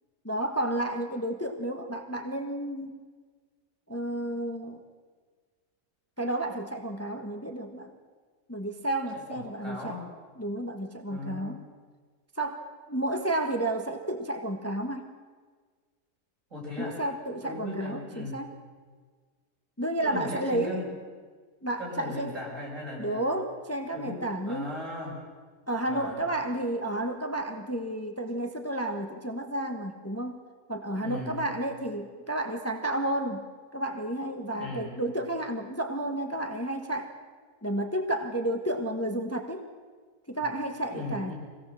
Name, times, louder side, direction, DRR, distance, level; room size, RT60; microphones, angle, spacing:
voice 1, 0.2-3.0 3.9-4.8 6.2-8.0 8.5-10.0 10.4-11.6 12.4-15.1 16.8-18.6 19.8-20.8 21.6-22.3 23.0-24.7 25.7-33.4 33.7-37.1 37.6-39.7 40.3-41.3, right 1 dB, 10° left, 5 dB, 1.3 m, -31 dB
voice 2, 9.1-10.1 11.1-11.5 16.5-16.9 17.4-18.4 20.0-20.9 21.8-23.3 23.9-25.2 25.8-26.2 30.9-31.4 34.5-34.9 40.9-41.3, left 1 dB, 55° right, -6 dB, 6.5 m, -37 dB
24.5 x 17.5 x 7.6 m, 1.5 s
omnidirectional pair, 1.6 m